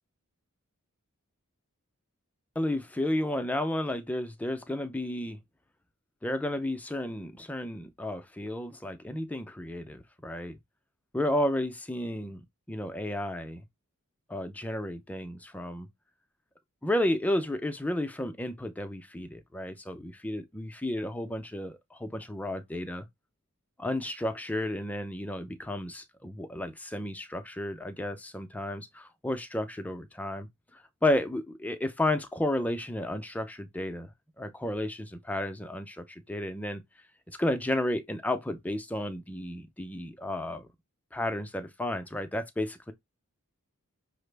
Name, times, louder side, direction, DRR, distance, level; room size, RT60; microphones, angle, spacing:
voice 1, 2.6-5.4 6.2-10.6 11.1-12.4 12.7-13.6 14.3-15.9 16.8-23.1 23.8-34.1 34.4-36.8 37.3-40.7 41.1-42.9, left 1 dB, 5° left, 0.4 m, -32 dB
5.6 x 2.0 x 3.2 m
head